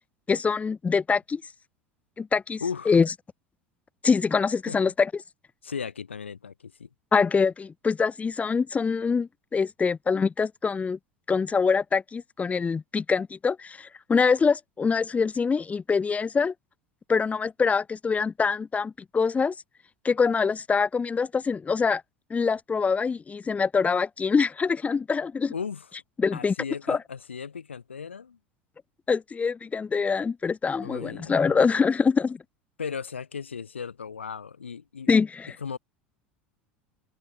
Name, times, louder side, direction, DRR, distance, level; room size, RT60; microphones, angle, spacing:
voice 1, 0.3-1.4 2.2-3.1 4.0-5.1 7.1-11.0 11.3-16.5 17.1-19.5 20.0-22.0 22.3-25.5 26.2-26.5 26.9-27.0 29.1-32.4 35.1-35.5, left 5 dB, 20° left, 3.2 m, -24 dB
voice 2, 2.6-2.9 4.7-4.8 5.6-6.9 25.5-25.9 26.3-28.4 30.8-31.7 32.8-35.1 35.6-35.8, left 6 dB, 85° left, 2.8 m, -36 dB
figure-of-eight pair, 75°, 6 cm